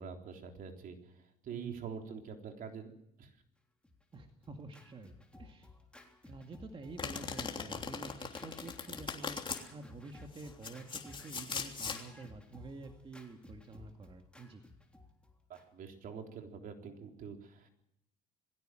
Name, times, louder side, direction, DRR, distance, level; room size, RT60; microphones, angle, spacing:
voice 1, 0.0-2.9 3.2-3.3 15.5-17.7, right 6 dB, 55° right, 3 dB, 3.8 m, -45 dB
Scratching (performance technique), 3.8-15.9, left 2 dB, 5° left, 3.4 m, -56 dB
voice 2, 4.1-5.7 6.3-9.4 9.7-14.6, right 3 dB, 30° right, 4 dB, 2.3 m, -49 dB
Domestic sounds home sounds, 7.0-9.6 10.4-12.0, left 5 dB, 30° left, 3.2 m, -40 dB
21.0 x 16.5 x 7.8 m, 0.79 s
supercardioid pair, 90°, 17 cm